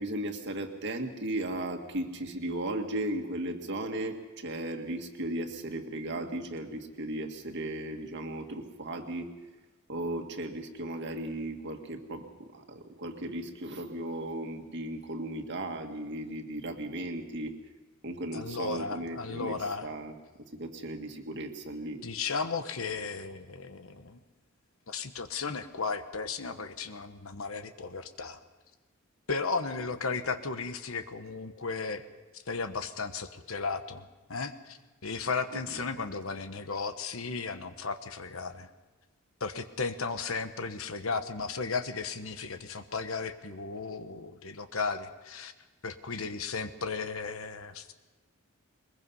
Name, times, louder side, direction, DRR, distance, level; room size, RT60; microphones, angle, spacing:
voice 1, 0.0-9.3 9.9-17.5 18.0-19.6 19.8-20.1 20.5-22.0, right 1 dB, 55° right, 5 dB, 1.9 m, -36 dB
voice 2, 18.3-19.9 22.0-24.2 24.9-28.4 29.3-32.1 32.5-38.7 39.4-45.5 45.8-47.9, left 4 dB, 75° left, 10 dB, 1.2 m, -35 dB
22.0 x 21.0 x 5.6 m, 1.2 s
head